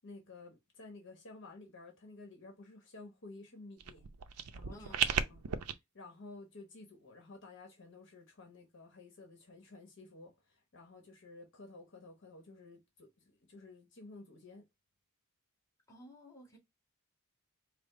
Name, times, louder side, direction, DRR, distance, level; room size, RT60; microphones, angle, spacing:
voice 1, 0.0-4.1 4.3-4.9 5.3-5.5 5.9-14.6, left 3 dB, 55° left, 1.1 m, -53 dB
sound 1, 3.8-5.7, right 8 dB, 80° right, 0.5 m, -35 dB
voice 2, 4.7-5.3 15.9-16.6, left 1 dB, 15° left, 1.7 m, -55 dB
5.0 x 2.0 x 3.7 m
head